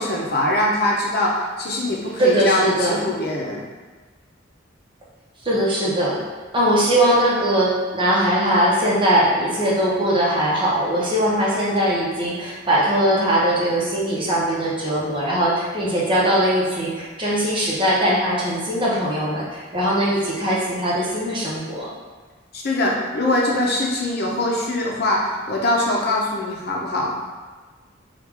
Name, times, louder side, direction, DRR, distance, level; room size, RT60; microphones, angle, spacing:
voice 1, 0.0-3.6 22.5-27.1, left 1 dB, 55° left, -2 dB, 0.7 m, -22 dB
voice 2, 2.2-3.0 5.4-6.2 6.5-21.9, right 1 dB, 25° right, -6 dB, 0.9 m, -20 dB
4.6 x 2.4 x 3.6 m, 1.4 s
head